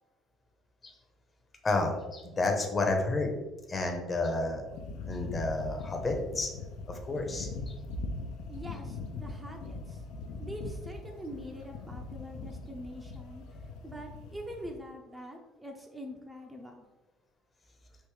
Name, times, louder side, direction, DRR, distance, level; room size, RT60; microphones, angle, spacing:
voice 1, 1.6-3.3 3.7-4.6 5.1-6.5 6.9-7.5, left 2 dB, 30° left, 3 dB, 0.7 m, -30 dB
sound 1, 4.6-14.8, left 3 dB, 80° left, 0.4 m, -41 dB
voice 2, 8.5-10.1 10.4-13.4 13.8-16.9, equal, 15° right, 1 dB, 0.5 m, -44 dB
3.5 x 2.6 x 3.1 m, 1.1 s
supercardioid pair, 90°, 0 cm